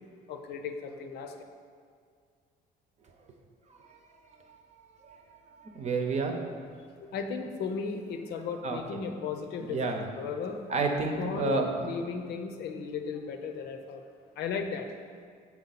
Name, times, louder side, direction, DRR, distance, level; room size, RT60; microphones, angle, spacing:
voice 1, 0.3-1.4 7.0-9.8 10.2-10.6 11.2-14.1 14.4-14.9, left 5 dB, 80° left, 5 dB, 0.7 m, -35 dB
voice 2, 5.6-6.4 8.6-9.0 9.6-10.1 10.7-11.9, right 3 dB, 45° right, 3 dB, 0.8 m, -30 dB
7.0 x 4.5 x 4.1 m, 2.1 s
cardioid pair, 110°, 17 cm